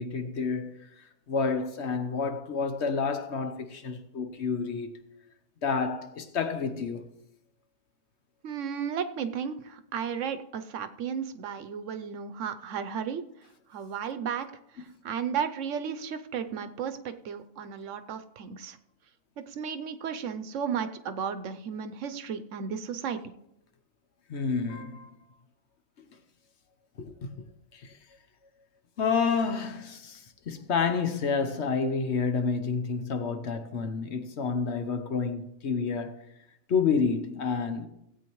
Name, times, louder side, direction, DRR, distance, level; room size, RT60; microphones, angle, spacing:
voice 1, 0.0-5.0 5.6-7.1 24.3-25.1 27.0-27.3 27.7-27.9 29.0-36.1 36.7-37.9, left 5 dB, 60° left, 1.1 m, -29 dB
voice 2, 8.4-13.2 13.7-14.5 14.7-18.8 19.4-23.3, right 7 dB, 75° right, 1.0 m, -34 dB
16.5 x 8.5 x 3.1 m
omnidirectional pair, 1.3 m